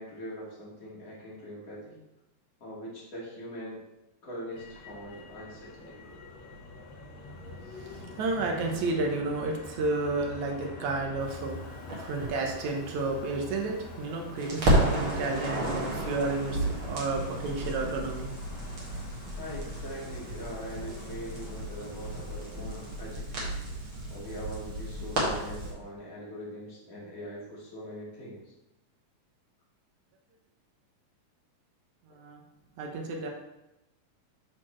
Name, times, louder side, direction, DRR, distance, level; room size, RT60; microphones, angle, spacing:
voice 1, 0.0-1.9 2.6-3.8 4.2-6.0 19.4-23.5 24.1-28.5, equal, 30° left, -5 dB, 1.8 m, -42 dB
Motor vehicle (road), 4.5-23.0, left 2 dB, 60° left, 2.1 m, -46 dB
voice 2, 8.2-11.6 12.0-18.3 32.2-32.4 32.8-33.3, right 3 dB, 65° right, 1 dB, 2.1 m, -31 dB
Crackle, 11.9-14.0 14.4-25.7, right 1 dB, 45° right, 2.1 m, -32 dB
12.0 x 4.2 x 3.2 m, 0.96 s
omnidirectional pair, 4.1 m